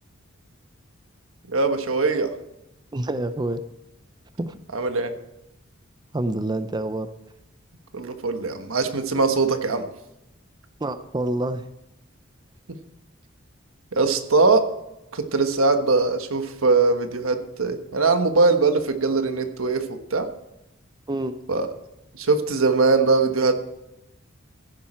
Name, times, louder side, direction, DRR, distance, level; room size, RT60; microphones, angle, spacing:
voice 1, 1.5-2.3 4.7-5.1 7.9-9.8 13.9-14.6 15.1-20.3 21.5-21.7 22.1-23.5, right 3 dB, 85° right, 7 dB, 1.4 m, -21 dB
voice 2, 2.9-3.6 4.4-4.6 6.1-7.1 10.8-11.6 21.1-21.3, right 1 dB, 20° right, 10 dB, 0.5 m, -27 dB
15.0 x 10.5 x 4.4 m, 0.89 s
head